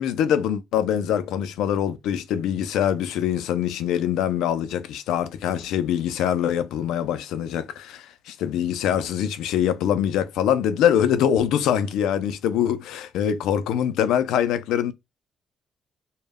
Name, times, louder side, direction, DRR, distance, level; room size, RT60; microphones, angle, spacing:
voice 1, 0.0-14.9, left 9 dB, 90° left, 0.3 m, -24 dB
2.1 x 2.0 x 3.3 m
cardioid pair, 90°, 0 cm